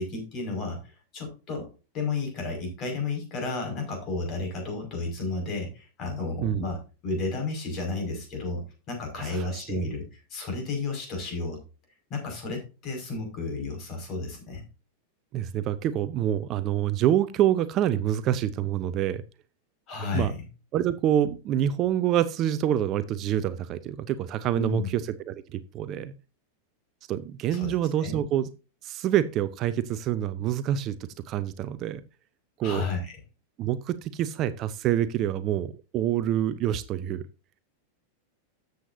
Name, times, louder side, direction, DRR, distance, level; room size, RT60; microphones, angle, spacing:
voice 1, 0.0-1.7 1.9-6.8 7.0-11.6 12.1-14.6 19.9-20.4 24.5-24.9 27.5-28.2 32.6-33.1, left 3 dB, 35° left, 3 dB, 5.5 m, -32 dB
voice 2, 9.2-9.9 15.3-19.2 20.1-20.3 20.7-26.1 27.1-28.5 28.8-32.0 32.6-32.9 33.6-37.3, right 11 dB, 35° right, 14 dB, 0.6 m, -27 dB
13.5 x 8.0 x 2.7 m, 0.31 s
figure-of-eight pair, 90°, 0 cm